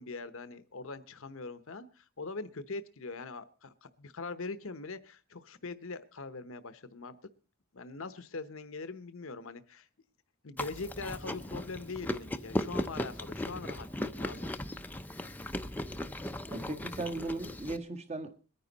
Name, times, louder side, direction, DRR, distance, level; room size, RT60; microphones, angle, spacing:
voice 1, 0.0-7.3 7.7-9.9 10.4-14.5, left 3 dB, 65° left, 0.9 m, -42 dB
Chewing mastication, 10.6-17.8, left 1 dB, 10° left, 0.7 m, -37 dB
voice 2, 16.5-18.5, right 2 dB, 30° right, 1.4 m, -37 dB
22.0 x 9.8 x 4.0 m
head